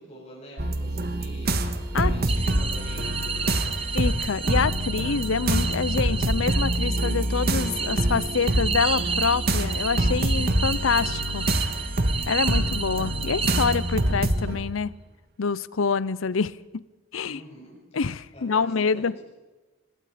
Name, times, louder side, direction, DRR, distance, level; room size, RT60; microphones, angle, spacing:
voice 1, 0.0-4.0 17.2-17.8 18.3-19.2, equal, 30° left, 7.4 m, -45 dB
sound 1, 0.6-14.6, right 1 dB, 50° right, 1.6 m, -26 dB
sound 2, 2.3-14.2, right 6 dB, 25° right, 1.4 m, -32 dB
voice 2, 3.9-11.5 12.3-14.9 15.4-16.8 17.1-17.4 17.9-19.1, left 5 dB, 80° left, 0.6 m, -26 dB
26.5 x 21.0 x 5.1 m
head